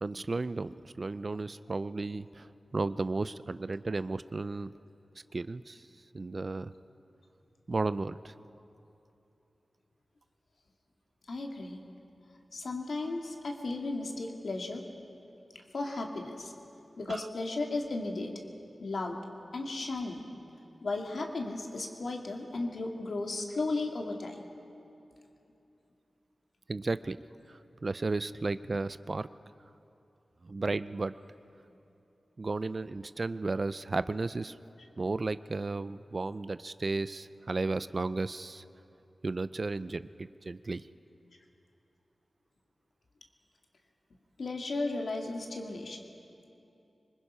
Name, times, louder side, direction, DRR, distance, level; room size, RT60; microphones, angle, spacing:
voice 1, 0.0-2.5 2.7-4.7 5.3-5.8 6.1-6.7 7.7-8.3 17.1-17.3 26.7-27.2 27.5-29.3 30.4-31.1 32.4-34.6 35.0-38.6 39.2-40.8, right 3 dB, 50° right, 15 dB, 0.5 m, -34 dB
voice 2, 11.3-11.8 12.5-14.8 15.7-16.5 17.0-18.3 18.8-19.2 19.5-20.2 20.8-24.5 44.4-46.0, left 2 dB, 75° left, 1 dB, 2.3 m, -35 dB
25.5 x 20.5 x 5.6 m, 2.8 s
cardioid pair, 40°, 0 cm